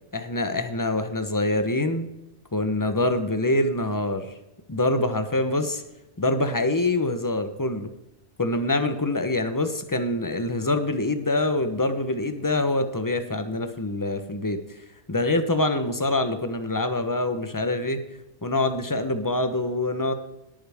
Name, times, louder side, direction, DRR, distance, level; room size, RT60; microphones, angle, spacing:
voice 1, 0.1-2.1 2.5-4.3 4.7-5.8 6.2-7.9 8.4-14.6 15.1-18.0 18.4-20.1, left 2 dB, 20° left, 8 dB, 1.0 m, -25 dB
18.5 x 8.7 x 3.6 m, 0.92 s
omnidirectional pair, 1.2 m